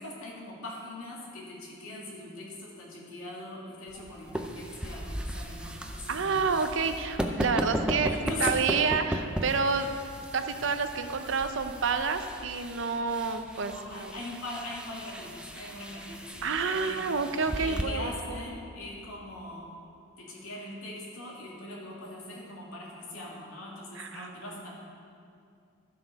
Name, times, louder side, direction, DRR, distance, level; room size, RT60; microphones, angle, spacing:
voice 1, 0.0-6.5 8.0-8.6 13.5-17.1 17.6-19.8 20.2-24.7, left 2 dB, 80° left, -4 dB, 2.5 m, -41 dB
sound 1, 3.9-17.8, right 1 dB, 5° right, 0.5 m, -36 dB
voice 2, 6.1-8.1 8.4-9.9 10.3-14.1 16.4-18.4 23.9-24.4, right 5 dB, 60° right, 8 dB, 0.6 m, -29 dB
12.5 x 7.8 x 5.2 m, 2.4 s
head